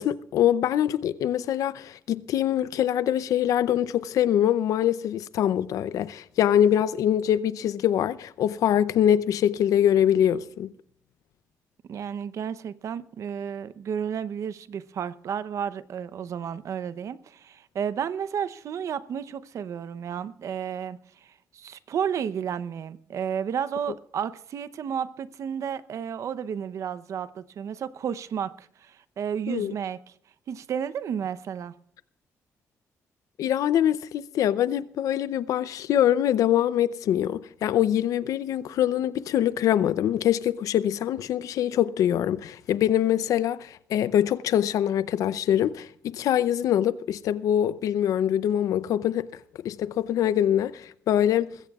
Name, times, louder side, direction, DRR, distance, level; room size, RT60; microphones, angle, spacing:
voice 1, 0.0-10.7 29.5-29.7 33.4-49.3 49.6-51.5, left 10 dB, 80° left, 0.6 m, -24 dB
voice 2, 11.9-21.0 21.5-30.0 30.5-31.7, right 8 dB, 65° right, 0.8 m, -32 dB
21.5 x 16.0 x 2.4 m
cardioid pair, 105°, 6 cm